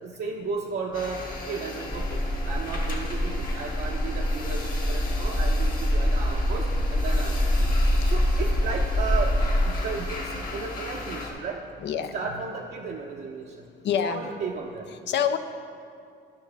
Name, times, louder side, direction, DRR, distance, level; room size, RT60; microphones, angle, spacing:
voice 1, 0.0-7.8 8.0-9.4 9.6-11.6 12.1-13.7 14.0-14.9, right 4 dB, 55° right, -1 dB, 0.6 m, -34 dB
sound 1, 0.9-11.3, left 2 dB, 45° left, 1.6 m, -37 dB
sound 2, 1.9-9.6, left 1 dB, 20° left, 0.9 m, -25 dB
voice 2, 11.8-12.1 13.8-14.2 15.1-15.4, left 8 dB, 65° left, 9 dB, 0.5 m, -25 dB
12.5 x 5.6 x 3.3 m, 2.4 s
cardioid pair, 90°, 20 cm